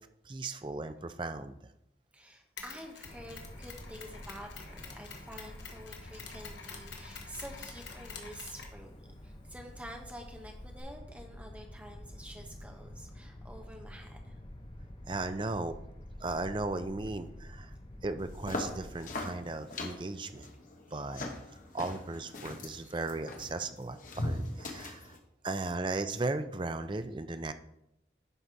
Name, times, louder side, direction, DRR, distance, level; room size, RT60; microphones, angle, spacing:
voice 1, 0.2-1.6 15.1-15.8 16.2-17.7 18.0-20.5 20.9-21.3 21.7-25.2 25.4-27.5, right 3 dB, 25° right, 10 dB, 0.5 m, -36 dB
voice 2, 2.1-14.4 20.9-21.0, equal, 10° right, 2 dB, 1.1 m, -49 dB
Mechanisms, 2.6-10.8, left 5 dB, 75° left, 1.4 m, -49 dB
sound 1, 3.0-18.9, left 1 dB, 30° left, 0.7 m, -48 dB
sound 2, 18.2-25.2, left 2 dB, 45° left, 1.2 m, -40 dB
11.0 x 4.2 x 4.6 m, 0.81 s
head